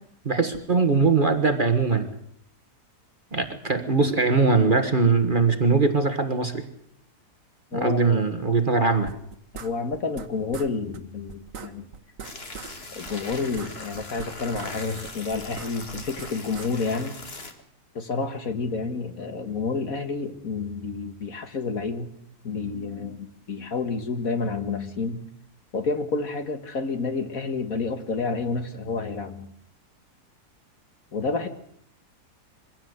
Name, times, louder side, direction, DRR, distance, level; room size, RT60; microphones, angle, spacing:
voice 1, 0.2-2.1 3.3-6.6 7.7-9.1, right 4 dB, 30° right, 7 dB, 1.5 m, -21 dB
voice 2, 7.7-8.2 9.5-11.9 13.0-17.2 18.0-22.1 22.4-25.2 25.7-29.5 31.1-31.5, left 4 dB, 55° left, 8 dB, 2.0 m, -29 dB
sound 1, 9.1-10.3 10.5-10.7 10.9-11.0 11.3-12.7 13.0-14.7 15.0-16.7, right 6 dB, 55° right, 1.6 m, -40 dB
sound 2, 12.2-17.5, left 2 dB, 35° left, 2.3 m, -40 dB
23.0 x 16.0 x 8.0 m, 0.68 s
omnidirectional pair, 1.8 m